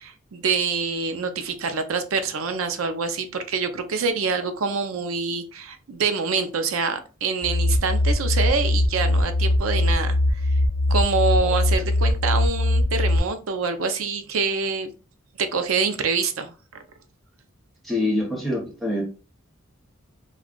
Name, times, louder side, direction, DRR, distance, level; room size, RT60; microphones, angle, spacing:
voice 1, 0.0-10.4 10.9-14.9 15.4-16.8, right 4 dB, 80° right, 0.5 m, -26 dB
sound 1, 7.4-13.2, left 1 dB, 55° left, 0.4 m, -21 dB
voice 2, 17.8-19.0, left 1 dB, ahead, 0.7 m, -25 dB
2.3 x 2.3 x 3.6 m
head